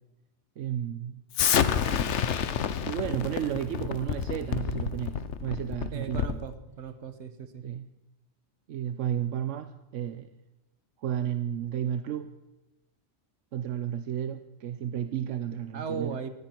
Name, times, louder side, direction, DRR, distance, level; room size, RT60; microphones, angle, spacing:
voice 1, 0.6-1.2 2.9-6.4 7.6-7.9 8.7-10.3 11.0-12.3 13.5-16.2, right 10 dB, 85° right, 11 dB, 1.0 m, -32 dB
Explosion, 1.3-6.5, left 8 dB, 70° left, 1.1 m, -28 dB
voice 2, 5.9-7.6 15.7-16.3, right 6 dB, 65° right, 11 dB, 1.5 m, -37 dB
18.5 x 15.0 x 4.5 m, 1.0 s
omnidirectional pair, 1.3 m